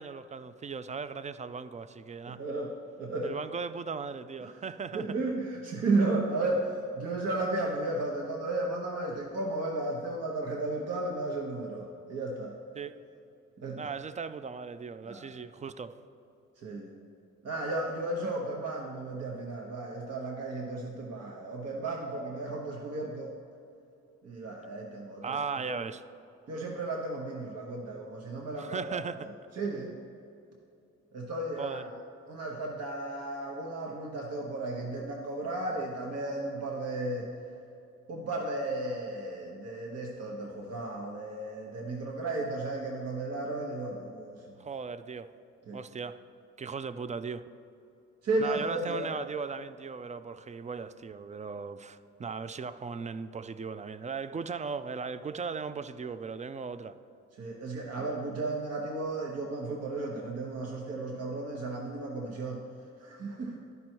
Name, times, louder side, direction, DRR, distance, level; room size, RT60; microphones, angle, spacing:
voice 1, 0.0-2.4 3.2-5.2 12.8-13.0 13.8-16.0 25.2-26.0 28.5-29.3 31.6-31.9 44.6-45.3 45.7-46.2 46.6-47.5 48.4-57.0, right 5 dB, 25° right, 0.3 m, -37 dB
voice 2, 2.3-2.7 3.0-3.3 4.4-4.5 4.9-12.5 13.6-13.8 15.0-15.3 16.6-16.9 17.4-23.3 24.2-25.4 25.6-25.7 26.5-29.0 29.5-30.0 31.1-31.8 32.3-37.3 38.1-44.4 45.7-45.8 48.2-49.0 57.4-62.6 63.0-63.6, right 2 dB, 60° right, 1.0 m, -34 dB
11.0 x 5.4 x 4.4 m
cardioid pair, 80°, 29 cm